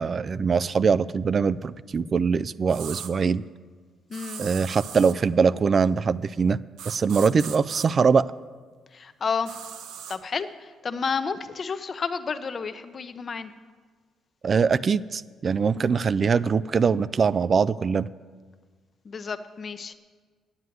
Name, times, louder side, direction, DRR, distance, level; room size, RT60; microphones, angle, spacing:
voice 1, 0.0-3.4 4.4-6.6 6.9-8.3 14.4-18.1, right 5 dB, 45° right, 17 dB, 0.3 m, -22 dB
sound 1, 2.7-3.1 4.1-5.2 6.8-7.9 9.5-10.2, right 8 dB, 90° right, 0.8 m, -38 dB
voice 2, 4.1-4.4 8.9-9.6 10.1-13.5 19.0-19.9, left 5 dB, 45° left, 11 dB, 0.7 m, -31 dB
9.6 x 8.1 x 9.3 m, 1.5 s
cardioid pair, 90°, 0 cm